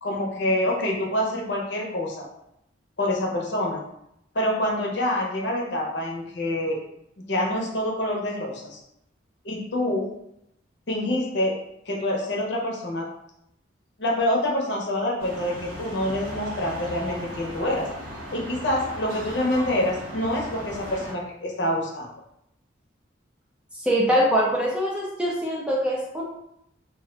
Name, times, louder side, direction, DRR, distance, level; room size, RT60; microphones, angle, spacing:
voice 1, 0.0-2.3 3.0-3.8 4.3-6.8 7.3-8.8 9.4-10.1 10.9-11.5 11.9-13.1 14.0-17.9 18.3-22.1, left 1 dB, 60° left, -1 dB, 0.7 m, -26 dB
sound 1, 15.2-21.1, equal, 75° right, 1.0 m, -37 dB
voice 2, 23.8-26.2, equal, 5° right, -4 dB, 0.4 m, -23 dB
2.4 x 2.1 x 3.7 m, 0.79 s
head